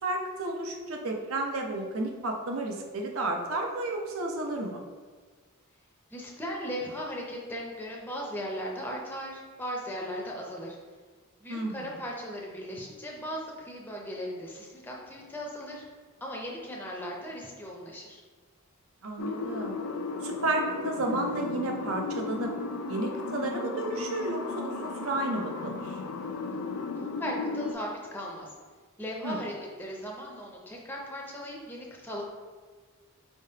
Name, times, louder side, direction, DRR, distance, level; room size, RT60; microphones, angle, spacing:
voice 1, 0.0-4.8 11.5-12.0 19.0-19.8 20.2-22.5 22.9-26.0 29.2-29.4, right 2 dB, 65° right, 2 dB, 0.6 m, -32 dB
voice 2, 6.1-10.8 11.4-15.8 16.2-18.2 27.2-28.5 29.0-32.2, equal, 10° left, -2 dB, 0.5 m, -37 dB
sound 1, 19.2-27.7, left 4 dB, 80° left, 0.4 m, -35 dB
4.7 x 3.4 x 2.8 m, 1.5 s
head